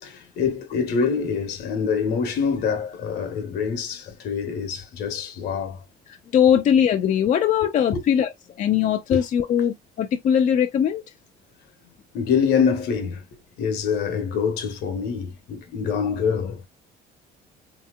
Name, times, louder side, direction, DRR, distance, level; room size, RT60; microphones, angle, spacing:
voice 1, 0.0-5.8 7.9-8.0 9.1-9.2 12.1-13.3 13.6-16.7, left 6 dB, 75° left, 1.0 m, -25 dB
voice 2, 6.3-8.3 8.6-11.0, left 9 dB, 50° left, 0.4 m, -20 dB
3.3 x 2.8 x 2.3 m
cardioid pair, 110°, 17 cm